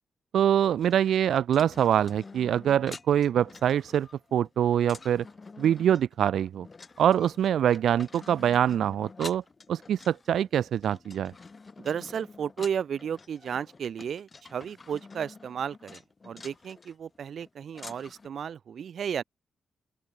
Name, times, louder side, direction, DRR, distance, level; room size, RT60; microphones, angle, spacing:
voice 1, 0.3-5.2 5.6-6.7 7.0-9.4 9.7-11.3, right 10 dB, 75° right, 0.5 m, -24 dB
sound 1, 0.8-18.3, left 4 dB, 30° left, 4.1 m, -48 dB
voice 2, 11.8-19.2, right 8 dB, 60° right, 1.6 m, -34 dB
open air
cardioid pair, 125°, 0 cm